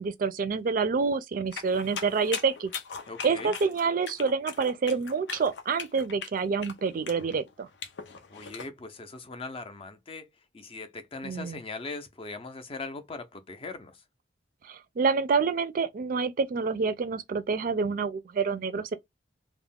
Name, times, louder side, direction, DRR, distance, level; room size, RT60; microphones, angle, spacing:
voice 1, 0.0-2.7 3.2-7.7 11.2-11.6 14.6-19.0, right 5 dB, 50° right, 0.4 m, -27 dB
sound 1, 1.5-8.7, left 6 dB, 90° left, 0.5 m, -39 dB
voice 2, 3.1-3.5 8.3-14.0, left 3 dB, 35° left, 0.5 m, -40 dB
2.3 x 2.0 x 3.5 m
head